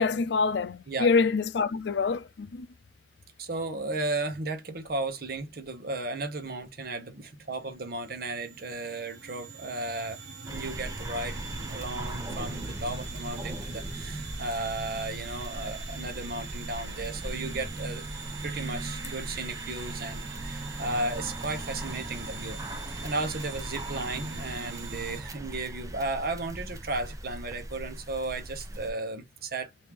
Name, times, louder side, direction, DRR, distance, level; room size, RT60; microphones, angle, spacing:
voice 1, 0.0-2.7, left 4 dB, 75° left, 0.4 m, -26 dB
voice 2, 3.4-18.0 18.4-22.6 23.0-29.7, right 2 dB, 55° right, 0.9 m, -34 dB
sound 1, 7.2-25.2, right 4 dB, 85° right, 1.2 m, -41 dB
sound 2, 10.5-28.9, right 1 dB, 20° right, 0.6 m, -39 dB
3.5 x 2.7 x 2.9 m
head